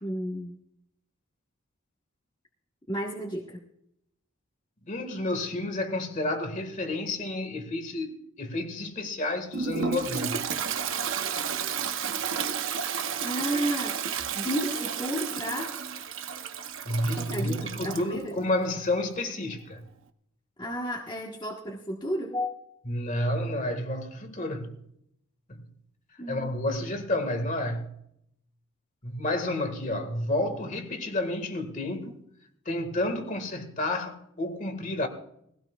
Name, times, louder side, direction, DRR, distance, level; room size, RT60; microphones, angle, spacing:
voice 1, 0.0-0.6 2.9-3.6 13.2-15.7 17.2-17.6 17.8-18.3 20.6-22.6 26.2-26.6, equal, 20° left, 1.3 m, -32 dB
voice 2, 4.8-10.4 16.9-19.8 22.9-24.8 25.5-25.6 26.3-27.9 29.0-32.2 32.7-35.1, left 1 dB, 35° left, 1.8 m, -30 dB
Toilet flush, 9.5-18.1, right 7 dB, 60° right, 0.8 m, -32 dB
20.5 x 16.5 x 2.4 m
head